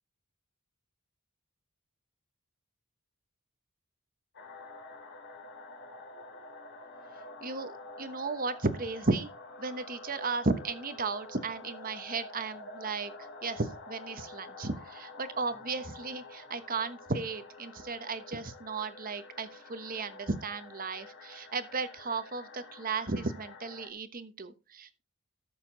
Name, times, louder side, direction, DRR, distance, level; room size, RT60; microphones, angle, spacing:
sound 1, 4.3-23.9, left 2 dB, 55° left, 2.5 m, -48 dB
voice 1, 7.4-9.3 9.6-25.0, right 3 dB, 40° right, 1.1 m, -35 dB
14.0 x 6.8 x 4.0 m
head